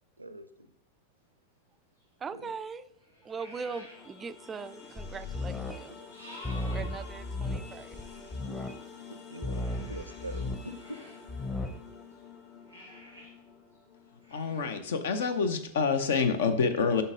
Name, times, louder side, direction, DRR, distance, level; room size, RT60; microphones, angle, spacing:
voice 1, 0.2-0.7 2.3-2.5 5.8-6.1 8.5-8.6 9.1-11.0, right 1 dB, 85° right, 12 dB, 0.5 m, -44 dB
sound 1, 2.0-2.1 2.9-4.2 4.4-8.4 9.4-12.2 12.6-13.3 13.7-13.8 14.2-14.6, left 1 dB, 85° left, 2.0 m, -52 dB
voice 2, 2.2-2.9 3.2-6.0 6.7-8.0, right 5 dB, 20° right, 13 dB, 0.3 m, -40 dB
sound 2, 3.6-14.7, left 6 dB, 40° left, 1.3 m, -50 dB
sound 3, 5.0-5.8 6.4-8.7 9.4-10.7 11.3-11.7, left 2 dB, 15° left, 1.0 m, -35 dB
voice 3, 14.3-17.0, left 5 dB, 60° left, 9 dB, 0.8 m, -27 dB
8.0 x 5.6 x 3.8 m, 0.75 s
figure-of-eight pair, 90°, 0 cm